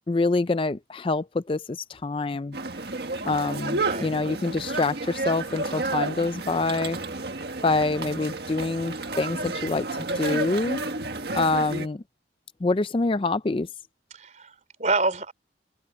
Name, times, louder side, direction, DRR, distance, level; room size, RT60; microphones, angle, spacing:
voice 1, 0.1-2.6 3.2-7.0 7.6-9.9 10.2-10.8 11.3-12.0 12.6-13.7, left 3 dB, 30° left, 0.4 m, -26 dB
sound 1, 2.5-11.9, right 3 dB, 60° right, 1.7 m, -31 dB
voice 2, 14.1-15.3, right 3 dB, 40° right, 4.2 m, -27 dB
open air
head